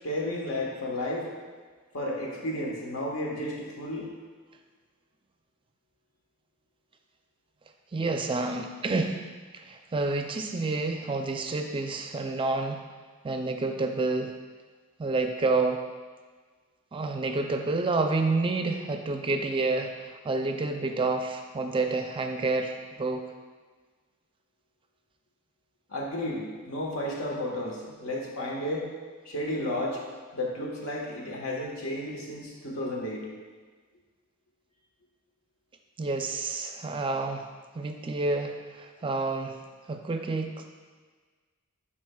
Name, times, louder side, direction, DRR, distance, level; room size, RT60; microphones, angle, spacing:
voice 1, 0.0-1.3 1.9-4.1 25.9-28.9 29.2-30.0 30.3-33.3, left 1 dB, 75° left, -2 dB, 1.3 m, -32 dB
voice 2, 7.9-9.2 9.5-12.8 13.2-14.3 15.0-15.8 16.9-23.2 36.0-37.5 37.7-39.6 39.9-40.7, right 3 dB, 25° right, 5 dB, 0.4 m, -29 dB
11.0 x 4.4 x 2.3 m, 1.5 s
head